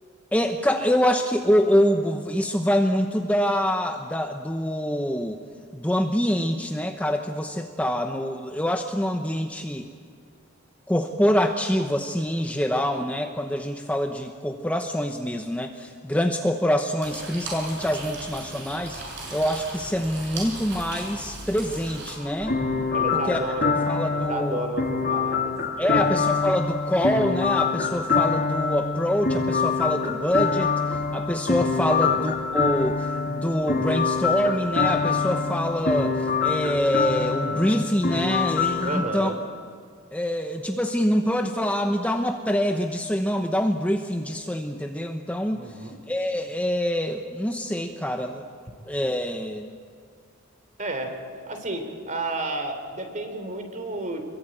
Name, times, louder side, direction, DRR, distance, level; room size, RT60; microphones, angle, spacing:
voice 1, 0.3-5.4 5.7-9.9 10.9-22.6 23.1-23.4 23.9-24.6 25.8-39.3 40.1-48.5 48.9-49.7, equal, 5° left, 4 dB, 0.9 m, -25 dB
sound 1, 17.0-22.1, right 2 dB, 55° right, 7.6 m, -37 dB
sound 2, 22.4-38.9, left 5 dB, 45° left, 2.7 m, -25 dB
voice 2, 22.9-23.8 24.1-26.1 31.9-32.1 38.8-39.4 45.5-46.0 50.8-51.2 51.5-54.3, right 1 dB, 35° right, 6 dB, 3.5 m, -31 dB
26.5 x 22.5 x 9.0 m, 2.1 s
head